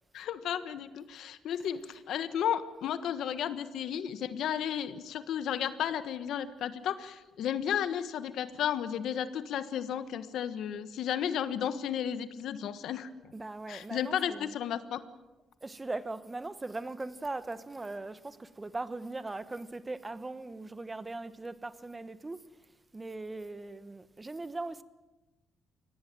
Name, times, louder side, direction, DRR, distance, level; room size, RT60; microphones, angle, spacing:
voice 1, 0.1-13.1 13.7-15.0, left 9 dB, 75° left, 1.4 m, -33 dB
voice 2, 13.3-14.6 15.6-22.4 22.9-24.8, right 2 dB, 20° right, 1.2 m, -39 dB
23.5 x 18.0 x 7.7 m
cardioid pair, 90°, 0 cm